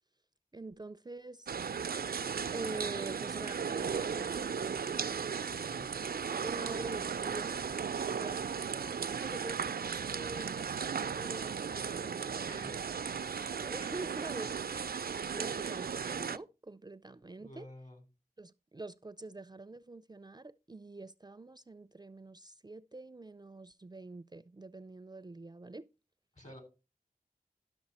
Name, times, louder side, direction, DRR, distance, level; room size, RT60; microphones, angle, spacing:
voice 1, 0.5-1.5 2.5-5.2 6.2-7.6 8.1-12.8 13.3-14.9 15.2-17.7 18.4-25.9, right 2 dB, 25° right, 0.4 m, -46 dB
sound 1, 1.5-16.4, right 6 dB, 90° right, 0.4 m, -36 dB
voice 2, 5.5-5.9 12.5-12.9 14.7-15.1 17.4-18.0 26.3-26.6, left 1 dB, 50° left, 3.9 m, -52 dB
11.5 x 6.3 x 4.1 m
wide cardioid pair, 55°, 15 cm